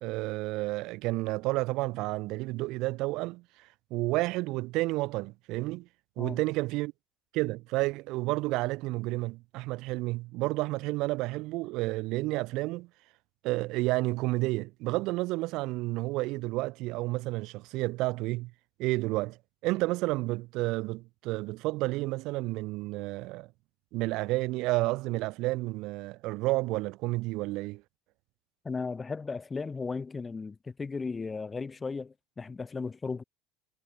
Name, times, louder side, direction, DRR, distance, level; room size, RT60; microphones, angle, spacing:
voice 1, 0.0-5.9 6.2-6.9 7.3-12.9 13.4-18.5 18.8-19.4 19.6-23.5 23.9-27.8, right 21 dB, 60° right, 0.4 m, -31 dB
voice 2, 28.6-33.2, left 4 dB, 20° left, 3.9 m, -36 dB
supercardioid pair, 100°, 0 cm